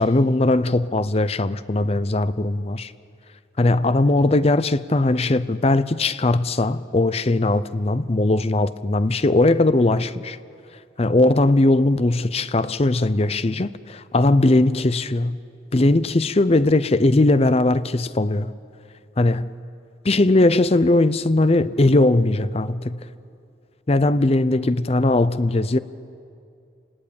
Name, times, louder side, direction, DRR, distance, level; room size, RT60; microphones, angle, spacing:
voice 1, 0.0-2.9 3.6-10.4 11.0-15.4 15.7-18.5 19.2-19.5 20.0-23.1 23.9-25.8, left 2 dB, 30° left, 0.6 m, -19 dB
29.5 x 20.0 x 8.7 m
head